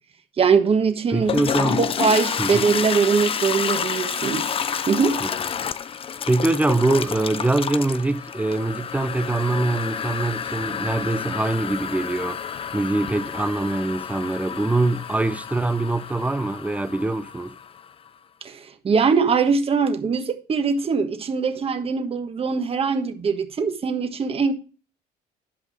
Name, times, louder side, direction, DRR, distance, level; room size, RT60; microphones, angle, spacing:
voice 1, 0.4-1.3 1.8-4.5 4.9-5.2 18.4-24.5, right 5 dB, 35° right, 1.4 m, -22 dB
Toilet flush, 1.1-17.9, left 7 dB, 35° left, 0.5 m, -29 dB
voice 2, 1.1-1.8 2.4-2.7 5.2-5.3 6.3-12.4 12.7-17.5, right 2 dB, 10° right, 0.6 m, -23 dB
11.0 x 5.3 x 4.8 m
cardioid pair, 110°, 17 cm